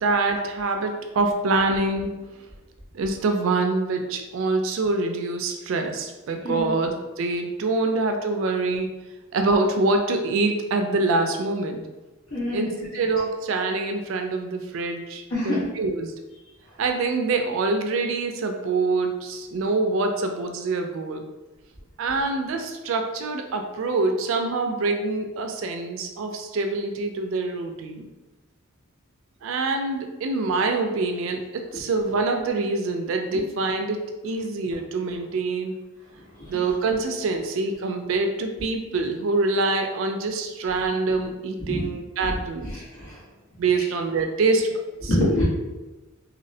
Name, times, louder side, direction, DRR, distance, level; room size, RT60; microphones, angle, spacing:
voice 1, 0.0-2.1 2.9-8.9 9.3-11.8 12.5-16.1 16.8-21.2 22.0-28.1 29.4-35.7 36.5-42.8 43.6-44.7 45.0-45.2, right 3 dB, 65° right, 4 dB, 0.3 m, -25 dB
voice 2, 12.3-12.7 15.3-15.7 36.4-36.6 41.7-41.8 42.2-42.3 42.9-43.2 45.0-45.4, left 1 dB, 80° left, -8 dB, 1.2 m, -25 dB
2.7 x 2.0 x 2.6 m, 1.1 s
head